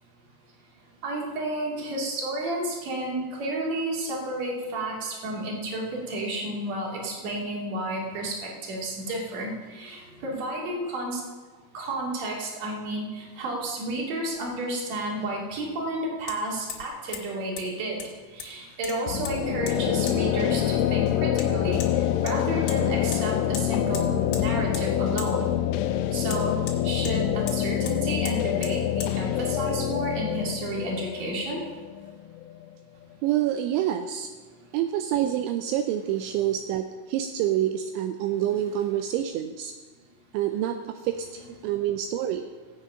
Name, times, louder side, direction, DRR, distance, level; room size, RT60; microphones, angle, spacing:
voice 1, 1.0-11.2 11.7-18.0 18.3-21.8 22.2-25.5 26.1-31.6 41.4-41.6, right 1 dB, 45° right, -2 dB, 2.8 m, -31 dB
Hammer, 14.4-14.5 16.3-16.4 16.7-16.9 17.1-17.2 17.6-17.7 18.0-18.5 18.8-19.4 19.7-19.8 20.1-20.2 21.4-21.5 21.8-21.9 22.3-22.8 23.1-23.2 23.5-23.7 23.9-24.5 24.7-24.9 25.2-25.3 26.3-27.2 27.5-27.6 27.9-28.0 28.3-28.4 28.6-28.8 29.0-29.1, left 7 dB, 70° left, 3.5 m, -38 dB
sound 1, 19.1-32.7, left 11 dB, 85° left, 2.8 m, -26 dB
voice 2, 33.2-34.3 34.7-39.7 40.3-42.4, right 11 dB, 85° right, 7 dB, 2.7 m, -27 dB
16.5 x 8.3 x 5.6 m, 1.4 s
omnidirectional pair, 6.0 m